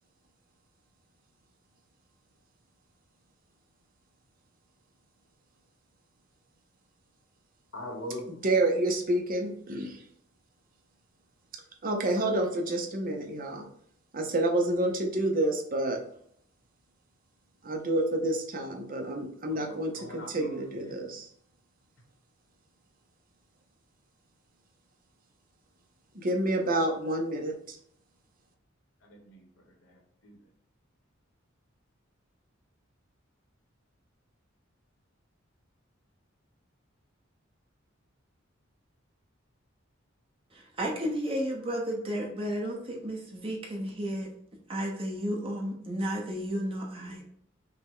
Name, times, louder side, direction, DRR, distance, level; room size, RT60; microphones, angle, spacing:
voice 1, 7.7-8.3 19.5-21.0 29.0-30.4 47.0-47.2, left 1 dB, 80° left, 2 dB, 1.2 m, -43 dB
voice 2, 8.4-10.0 11.8-13.6 14.1-16.0 17.6-21.3 26.1-27.8, right 1 dB, 45° right, 2 dB, 0.7 m, -29 dB
voice 3, 40.5-44.3 44.7-47.2, equal, 30° right, -2 dB, 1.1 m, -33 dB
5.6 x 2.2 x 3.6 m, 0.67 s
head